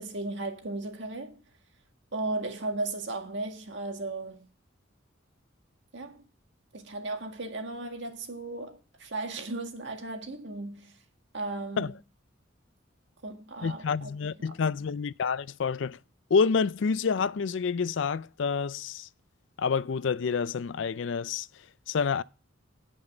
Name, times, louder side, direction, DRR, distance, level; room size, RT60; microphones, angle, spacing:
voice 1, 0.0-1.4 2.1-4.5 5.9-6.2 6.7-11.0 11.3-12.0 13.2-14.5, right 2 dB, 60° right, 1.9 m, -36 dB
voice 2, 13.6-16.0 16.3-19.1 19.6-21.5 21.9-22.2, left 5 dB, 60° left, 0.4 m, -28 dB
16.5 x 5.6 x 3.9 m
head